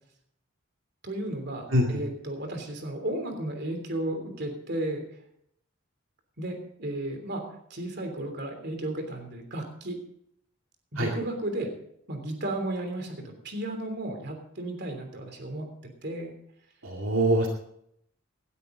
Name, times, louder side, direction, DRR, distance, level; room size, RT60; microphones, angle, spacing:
voice 1, 1.0-5.0 6.4-7.4 7.7-10.0 10.9-11.7 12.1-15.7 16.0-16.4, right 1 dB, 55° right, 5 dB, 3.1 m, -34 dB
voice 2, 16.8-17.5, right 1 dB, 75° right, 0 dB, 2.2 m, -24 dB
17.5 x 12.5 x 3.9 m, 0.72 s
head